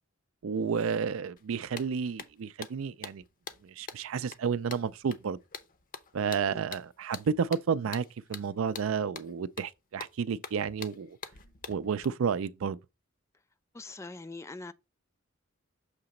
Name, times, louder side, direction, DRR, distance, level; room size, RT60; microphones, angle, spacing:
voice 1, 0.4-3.2 3.6-5.4 6.1-8.0 8.3-11.2 11.7-12.8, right 6 dB, 80° right, 0.4 m, -31 dB
sound 1, 1.4-1.5 1.8-12.0, left 6 dB, 40° left, 0.7 m, -45 dB
voice 2, 13.7-14.7, left 3 dB, 15° left, 0.3 m, -42 dB
6.6 x 2.9 x 5.1 m
head